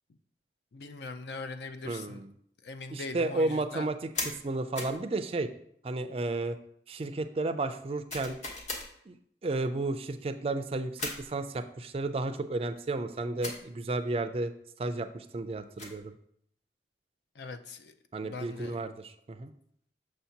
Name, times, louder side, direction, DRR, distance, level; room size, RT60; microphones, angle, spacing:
voice 1, 0.7-2.2 2.6-3.9 17.4-17.9 18.2-18.8, left 3 dB, 70° left, 10 dB, 0.5 m, -41 dB
voice 2, 1.8-2.3 2.9-5.5 5.8-6.6 6.9-8.4 9.1-9.2 9.4-14.5 14.8-16.1 18.1-19.5, right 2 dB, 35° right, 9 dB, 0.4 m, -32 dB
sound 1, 4.1-4.4 4.8-5.0 8.1-8.9 11.0-11.3 13.4-13.6 15.5-16.0, left 2 dB, 40° left, 1.2 m, -37 dB
6.5 x 2.8 x 5.7 m, 0.69 s
head